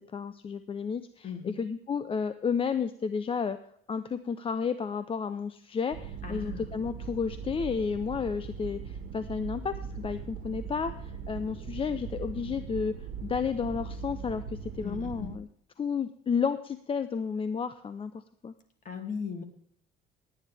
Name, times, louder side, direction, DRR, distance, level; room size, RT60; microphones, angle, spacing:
voice 1, 0.1-3.6 3.9-12.9 13.2-15.5 15.8-18.1 18.4-18.5, left 6 dB, 30° left, 12 dB, 0.6 m, -32 dB
voice 2, 1.2-1.5 6.2-6.7 14.8-15.3 18.8-19.4, left 6 dB, 50° left, 6 dB, 2.5 m, -37 dB
sound 1, 5.9-15.4, right 6 dB, 90° right, 1.4 m, -40 dB
17.5 x 9.5 x 3.5 m, 0.66 s
cardioid pair, 110°, 17 cm